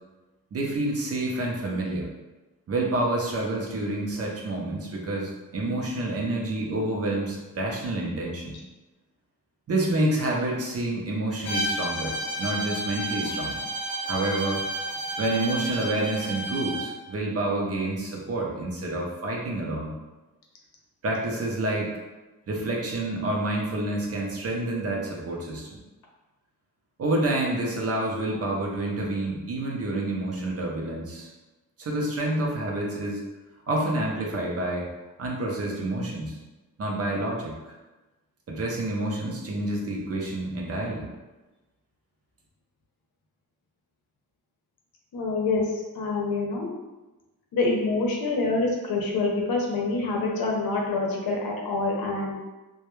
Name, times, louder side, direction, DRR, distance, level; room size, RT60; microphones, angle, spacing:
voice 1, 0.5-2.1 2.7-8.6 9.7-13.6 14.1-14.6 15.2-19.9 21.0-21.9 22.5-25.7 27.0-31.3 31.8-33.2 33.7-34.9 35.2-36.4 36.8-37.7 38.5-41.1, right 2 dB, 40° right, -2 dB, 0.5 m, -28 dB
Bowed string instrument, 11.4-16.9, right 1 dB, 35° left, 0.9 m, -31 dB
voice 2, 45.1-46.7 47.5-52.3, left 3 dB, 75° left, 0 dB, 0.7 m, -26 dB
2.2 x 2.2 x 3.0 m, 1.1 s
cardioid pair, 120°, 36 cm